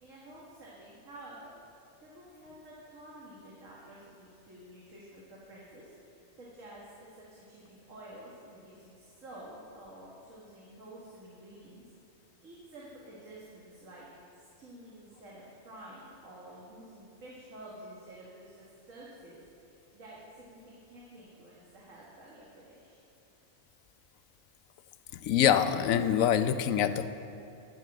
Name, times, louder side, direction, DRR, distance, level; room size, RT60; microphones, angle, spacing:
voice 1, 0.0-1.5 2.0-11.8 12.4-14.1 14.6-23.0, right 1 dB, 75° right, -6 dB, 2.2 m, -50 dB
voice 2, 25.1-27.1, left 9 dB, 90° left, 11 dB, 1.0 m, -25 dB
12.0 x 6.7 x 7.6 m, 2.8 s
omnidirectional pair, 1.4 m